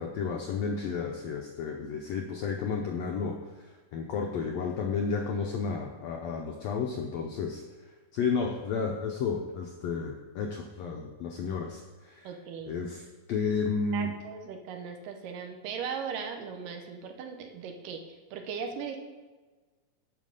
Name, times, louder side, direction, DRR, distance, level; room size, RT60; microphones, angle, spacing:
voice 1, 0.0-3.4 3.9-7.6 8.1-12.3 12.7-14.1, left 5 dB, 80° left, 2 dB, 1.5 m, -32 dB
voice 2, 12.2-12.8 13.9-18.0 18.3-19.0, right 6 dB, 80° right, 5 dB, 2.6 m, -38 dB
9.1 x 5.8 x 6.6 m, 1.3 s
omnidirectional pair, 3.8 m